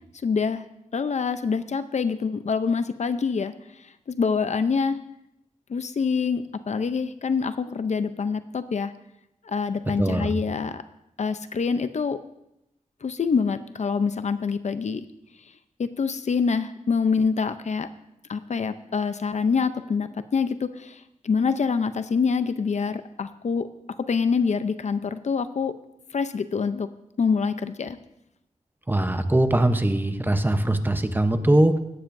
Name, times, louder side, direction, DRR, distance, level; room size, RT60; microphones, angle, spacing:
voice 1, 0.2-0.6 0.9-3.5 4.1-5.0 5.7-8.9 9.4-10.8 11.2-12.2 13.0-15.1 15.8-17.9 18.3-23.7 24.1-25.7 26.1-26.9 27.2-28.0, left 5 dB, 60° left, 11 dB, 0.6 m, -25 dB
voice 2, 10.0-10.3 28.9-31.8, right 1 dB, 15° right, 8 dB, 0.8 m, -21 dB
16.5 x 12.0 x 2.6 m, 0.84 s
wide cardioid pair, 80°, 13 cm